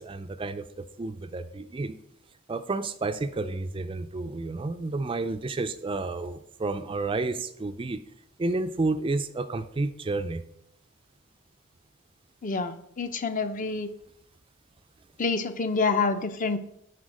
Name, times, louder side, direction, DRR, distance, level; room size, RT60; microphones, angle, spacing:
voice 1, 0.0-2.0 2.5-8.0 8.4-10.4, right 3 dB, 25° right, 10 dB, 0.4 m, -31 dB
voice 2, 12.4-13.9 15.2-16.6, left 4 dB, 35° left, 10 dB, 0.6 m, -27 dB
10.5 x 4.5 x 4.9 m, 0.73 s
head